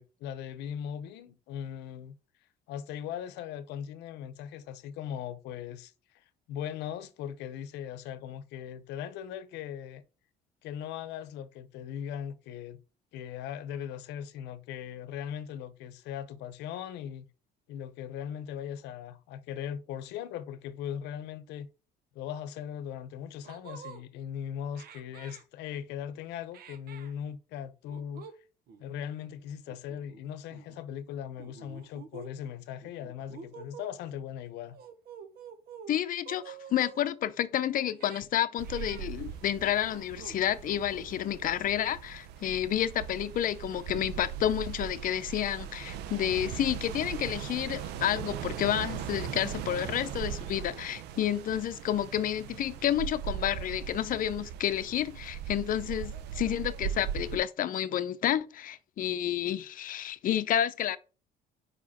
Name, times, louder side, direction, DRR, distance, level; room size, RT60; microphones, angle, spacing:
voice 1, 0.0-2.1 2.7-10.0 10.6-12.8 13.1-17.3 17.7-21.7 22.1-28.3 28.8-34.8, left 9 dB, 85° left, 0.8 m, -39 dB
sound 1, 22.9-23.0 23.4-24.0 24.7-25.4 26.5-27.1 27.9-28.3 28.7-28.8 29.7-30.2 30.5-30.8 31.4-32.3 32.8-33.9 34.7-36.0 36.2-37.0 37.9-38.2 38.6-39.0 39.6-40.4 40.6-41.2, right 7 dB, 65° right, 1.0 m, -48 dB
voice 2, 35.9-61.0, left 11 dB, 55° left, 0.7 m, -30 dB
sound 2, 38.6-57.4, right 9 dB, 85° right, 0.6 m, -39 dB
5.0 x 4.9 x 4.2 m
cardioid pair, 110°, 17 cm